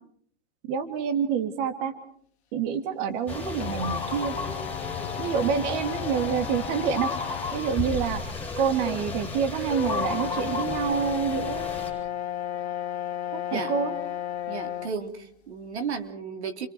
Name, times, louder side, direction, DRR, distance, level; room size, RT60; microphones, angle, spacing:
voice 1, 0.7-1.9 2.5-4.3 5.2-7.1 7.5-8.2 8.6-11.7 13.5-13.9, right 7 dB, 40° right, 7 dB, 2.9 m, -27 dB
sound 1, 3.3-11.9, left 3 dB, 5° left, 7.9 m, -34 dB
sound 2, 3.6-7.7 8.3-8.4 9.7-15.0, left 11 dB, 70° left, 2.0 m, -33 dB
voice 2, 14.5-16.7, right 5 dB, 75° right, 6 dB, 3.4 m, -34 dB
29.5 x 27.0 x 4.7 m, 0.64 s
hypercardioid pair, 145°, 34 cm